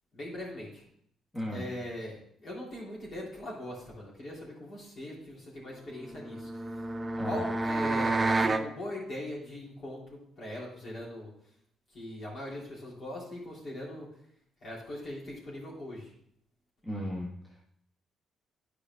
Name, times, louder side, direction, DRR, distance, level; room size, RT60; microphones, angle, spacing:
voice 1, 0.1-0.8 1.5-7.0 7.2-11.3 11.9-14.1 14.6-16.1, left 1 dB, 55° left, -4 dB, 3.3 m, -40 dB
voice 2, 1.3-1.6 7.2-7.4 16.8-17.6, equal, 15° left, -2 dB, 1.3 m, -36 dB
sound 1, 6.1-8.7, right 2 dB, 25° right, 0.6 m, -29 dB
10.0 x 4.8 x 3.6 m, 0.69 s
cardioid pair, 75°, 0 cm